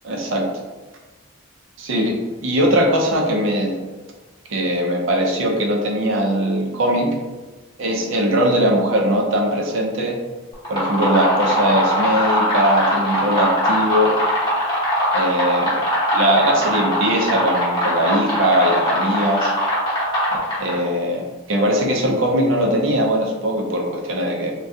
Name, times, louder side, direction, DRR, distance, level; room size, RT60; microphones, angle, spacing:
voice 1, 0.0-0.5 1.8-3.8 4.5-7.1 7.8-10.2 10.7-14.1 15.1-15.8 16.1-19.5 20.6-24.5, equal, 75° right, 1 dB, 0.5 m, -20 dB
sound 1, 10.5-20.9, equal, 20° left, 0.9 m, -21 dB
2.7 x 2.3 x 3.4 m, 1.2 s
head